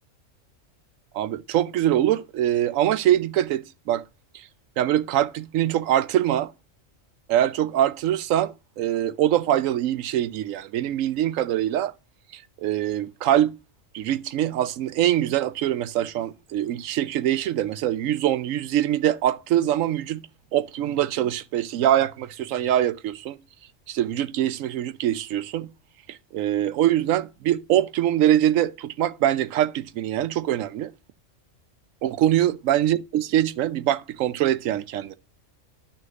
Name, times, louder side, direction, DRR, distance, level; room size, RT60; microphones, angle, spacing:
voice 1, 1.1-4.0 4.3-4.5 4.8-6.5 7.3-11.9 12.3-13.6 13.9-20.2 20.5-23.4 23.9-25.7 26.1-30.9 32.0-35.2, right 12 dB, 85° right, 1.0 m, -23 dB
11.0 x 6.4 x 2.4 m
omnidirectional pair, 1.3 m